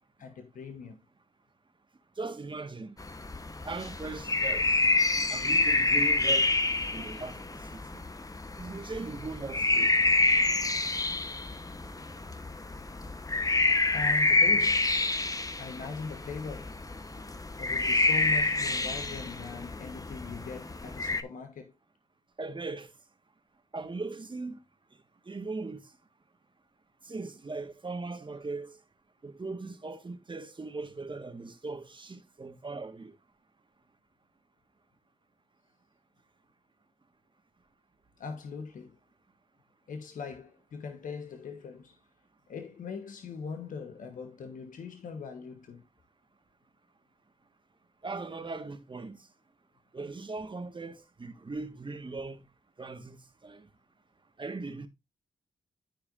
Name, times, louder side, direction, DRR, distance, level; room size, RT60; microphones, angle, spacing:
voice 1, 0.2-1.0 13.9-15.0 15.6-16.8 17.6-21.7 38.2-39.0 39.9-42.0 42.5-45.8, left 5 dB, 75° left, 1.3 m, -40 dB
voice 2, 2.2-2.9 3.6-4.8 5.3-6.5 6.9-8.0 8.6-9.9 22.4-22.9 23.7-24.6 25.2-25.8 27.0-28.8 29.2-33.1 48.0-49.2 49.9-52.4 52.8-53.7 54.4-54.9, right 3 dB, 35° right, 1.6 m, -39 dB
sound 1, 3.0-21.2, left 3 dB, 25° left, 1.0 m, -28 dB
13.5 x 4.7 x 2.6 m
cardioid pair, 50°, 14 cm